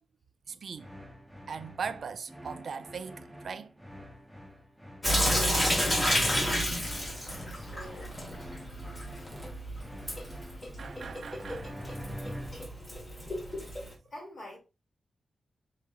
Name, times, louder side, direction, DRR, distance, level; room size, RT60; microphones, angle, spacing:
voice 1, 0.5-0.9 1.5-3.7 10.8-12.0, right 6 dB, 55° right, 0.3 m, -39 dB
sound 1, 0.8-12.8, equal, 5° right, 0.5 m, -45 dB
Sink (filling or washing) / Drip, 5.0-13.9, equal, 20° left, 1.0 m, -31 dB
voice 2, 7.5-8.2 14.1-14.6, left 1 dB, 45° left, 2.1 m, -47 dB
4.9 x 3.8 x 2.2 m
wide cardioid pair, 175°, 0 cm